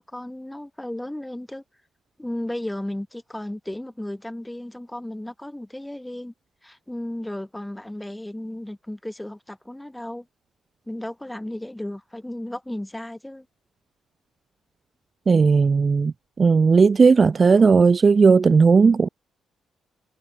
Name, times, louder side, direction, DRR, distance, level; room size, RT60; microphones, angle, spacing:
voice 1, 0.0-1.6 2.2-6.3 6.6-10.3 10.9-13.5, left 1 dB, 5° left, 5.0 m, -34 dB
voice 2, 15.3-19.1, right 5 dB, 35° right, 0.9 m, -16 dB
cardioid pair, 90°, 0 cm